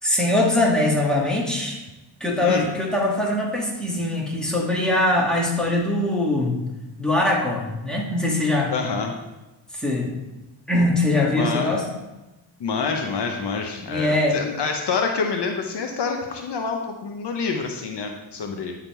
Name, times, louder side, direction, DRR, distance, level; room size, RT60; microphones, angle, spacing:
voice 1, 0.0-1.8 2.2-6.6 7.0-8.7 9.7-10.1 10.7-11.8 13.8-14.4, left 1 dB, ahead, -3 dB, 1.9 m, -22 dB
voice 2, 8.7-9.1 11.3-11.8 12.6-18.8, left 5 dB, 65° left, 3 dB, 0.9 m, -27 dB
9.7 x 3.7 x 4.5 m, 1.0 s
cardioid pair, 75°, 45 cm